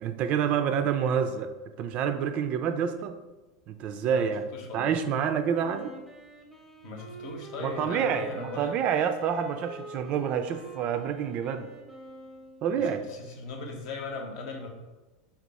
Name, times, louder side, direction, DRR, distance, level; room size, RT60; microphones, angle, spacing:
voice 1, 0.0-1.5 1.8-3.2 3.7-4.4 4.7-5.9 7.6-11.7 12.6-13.0, right 7 dB, 45° right, 8 dB, 0.3 m, -28 dB
voice 2, 4.0-5.0 6.8-8.8 12.7-14.7, left 3 dB, 55° left, 2 dB, 0.8 m, -39 dB
Wind instrument woodwind instrument, 5.6-12.7, right 1 dB, 5° left, 0.7 m, -45 dB
3.5 x 2.4 x 4.0 m, 1.1 s
hypercardioid pair, 90°, 3 cm